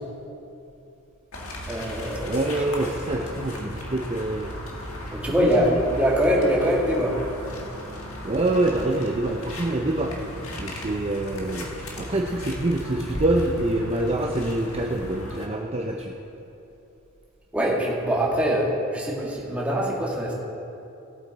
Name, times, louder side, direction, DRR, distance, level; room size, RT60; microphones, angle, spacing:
sound 1, 1.3-15.5, equal, 80° left, 1.7 m, -36 dB
voice 1, 1.7-2.5 5.1-7.2 17.5-20.3, equal, 5° right, -4 dB, 2.0 m, -23 dB
voice 2, 2.3-4.5 5.2-5.8 8.2-10.1 10.5-11.7 12.0-16.1, right 2 dB, 30° right, 1 dB, 0.7 m, -26 dB
17.5 x 8.2 x 4.1 m, 2.8 s
head